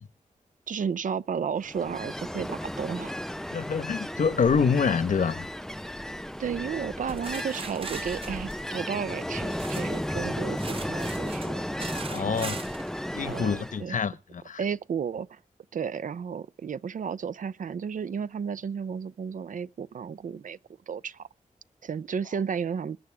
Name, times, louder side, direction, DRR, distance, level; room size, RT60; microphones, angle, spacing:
voice 1, 0.7-3.2 6.4-11.6 12.3-12.6 13.2-14.0 14.6-15.4 15.7-20.6 20.9-21.3 21.8-23.0, right 7 dB, 75° right, 0.6 m, -33 dB
Ocean, 1.6-13.8, equal, 5° left, 0.6 m, -34 dB
voice 2, 3.5-5.5 12.1-12.6 13.1-14.6, left 5 dB, 75° left, 1.3 m, -26 dB
sound 1, 7.1-10.1 10.5-12.9, right 4 dB, 45° right, 1.0 m, -40 dB
21.0 x 9.6 x 3.6 m
wide cardioid pair, 80°, 13 cm